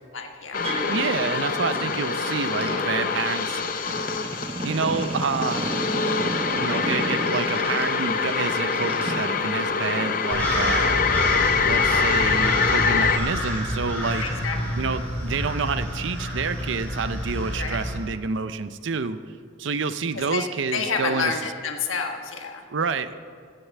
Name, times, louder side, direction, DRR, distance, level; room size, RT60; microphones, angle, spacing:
voice 1, 0.1-0.7 10.5-10.7 14.2-14.6 17.6-17.8 20.1-20.4 20.7-22.6, left 5 dB, 75° left, 3 dB, 1.3 m, -29 dB
sound 1, 0.5-13.2, left 5 dB, 40° left, 0.5 m, -25 dB
sound 2, 0.6-9.3, right 2 dB, 25° right, 1.0 m, -33 dB
voice 2, 0.9-3.6 4.6-5.8 6.5-11.0 11.6-14.3 14.7-19.2 19.6-21.3 22.7-23.2, right 5 dB, 60° right, 12 dB, 0.5 m, -28 dB
sound 3, 10.3-18.0, equal, 10° left, 2.7 m, -28 dB
15.5 x 6.6 x 7.2 m, 2.1 s
head